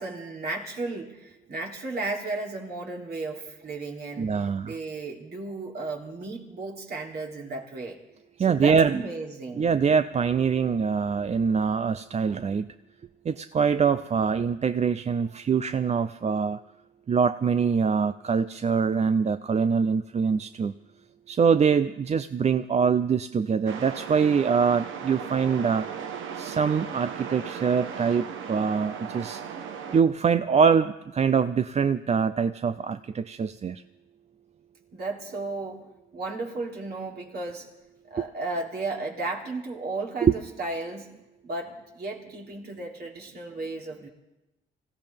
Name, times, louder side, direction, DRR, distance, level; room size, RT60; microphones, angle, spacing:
voice 1, 0.0-4.3 4.6-8.0 8.5-9.7 34.9-35.8 36.1-37.7 38.1-41.1 41.4-44.1, right 3 dB, 55° right, 0 dB, 3.2 m, -34 dB
voice 2, 4.2-4.8 8.4-9.0 9.6-12.7 13.3-16.6 17.1-20.7 21.3-25.9 26.4-29.4 29.9-33.8 40.2-40.3, right 6 dB, 35° right, 12 dB, 0.5 m, -24 dB
sound 1, 23.7-30.0, right 7 dB, 80° right, 1.2 m, -37 dB
25.5 x 16.0 x 3.5 m, 0.99 s
cardioid pair, 90°, 20 cm